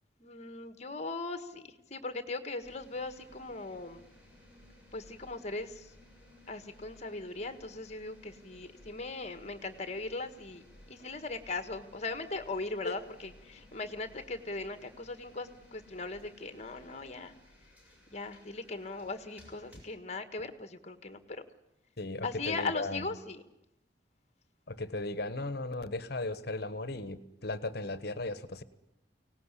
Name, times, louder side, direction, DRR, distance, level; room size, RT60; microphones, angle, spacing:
voice 1, 0.2-4.0 4.9-5.9 6.5-10.6 10.9-17.3 18.1-21.4 22.2-23.4, left 3 dB, 40° left, 10 dB, 1.7 m, -39 dB
sound 1, 2.6-19.8, left 1 dB, 10° right, 7.0 m, -58 dB
voice 2, 22.0-23.1 24.7-28.6, left 2 dB, 60° left, 14 dB, 1.3 m, -36 dB
24.0 x 18.5 x 10.0 m, 0.90 s
head